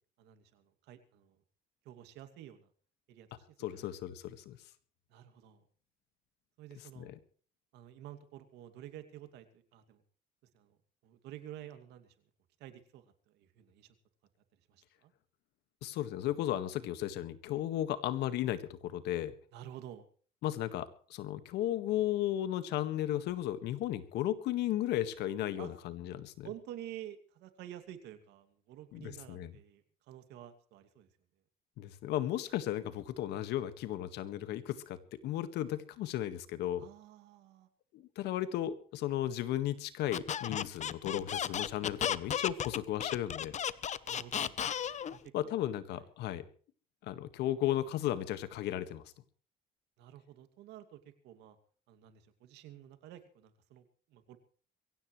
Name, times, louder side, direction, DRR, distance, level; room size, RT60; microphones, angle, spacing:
voice 1, 0.2-1.4 1.8-2.7 3.1-3.5 3.7-4.0 5.1-5.6 6.6-7.1 7.7-10.0 10.5-12.2 12.6-14.0 14.7-15.1 19.5-20.0 25.6-25.7 26.1-31.1 36.8-37.7 44.0-44.6 45.1-45.6 45.9-46.1 50.0-51.6 51.9-54.4, right 11 dB, 85° right, 8 dB, 2.6 m, -50 dB
voice 2, 3.6-4.6 7.0-7.1 15.8-19.3 20.4-26.5 28.9-29.5 31.8-36.9 37.9-43.6 45.3-46.5 47.0-49.1, left 12 dB, 80° left, 12 dB, 1.8 m, -35 dB
Squeak, 40.1-45.2, left 9 dB, 45° left, 0.9 m, -34 dB
23.0 x 17.0 x 3.3 m, 0.43 s
cardioid pair, 110°, 17 cm